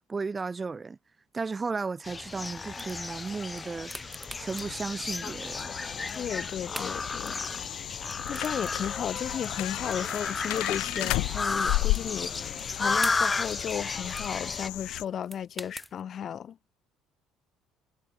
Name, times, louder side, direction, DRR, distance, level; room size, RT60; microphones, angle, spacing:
voice 1, 0.1-1.0 1.3-4.1 4.4-5.7, right 4 dB, 30° right, 0.4 m, -34 dB
sound 1, 2.0-14.7, left 3 dB, 25° left, 1.1 m, -33 dB
sound 2, 2.2-16.0, right 1 dB, 5° right, 1.0 m, -48 dB
sound 3, 2.6-15.0, left 22 dB, 70° left, 1.0 m, -35 dB
voice 2, 5.8-7.8 8.3-16.6, left 9 dB, 50° left, 0.7 m, -35 dB
hypercardioid pair, 60°, 0 cm